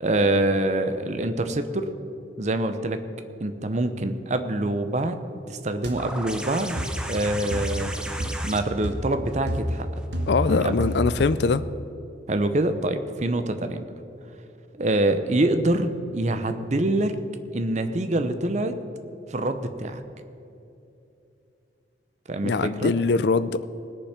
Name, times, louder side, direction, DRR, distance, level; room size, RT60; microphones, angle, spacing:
voice 1, 0.0-1.9 2.4-3.0 3.4-5.2 5.5-6.8 7.1-7.9 8.4-9.9 10.5-10.7 12.3-13.8 14.7-17.2 17.5-18.8 19.3-20.0 22.3-22.9, right 1 dB, 40° right, 9 dB, 0.7 m, -25 dB
sound 1, 5.8-6.0 6.8-7.0 7.5-7.9 8.2-8.5 8.8-9.1 9.5-10.6 10.8-11.2, equal, 65° right, 1.3 m, -29 dB
sound 2, 6.0-11.3 12.6-12.7, right 1 dB, 5° right, 0.6 m, -36 dB
voice 2, 10.3-11.6 22.4-23.6, left 4 dB, 60° left, 14 dB, 0.4 m, -22 dB
19.5 x 6.8 x 5.7 m, 2.8 s
head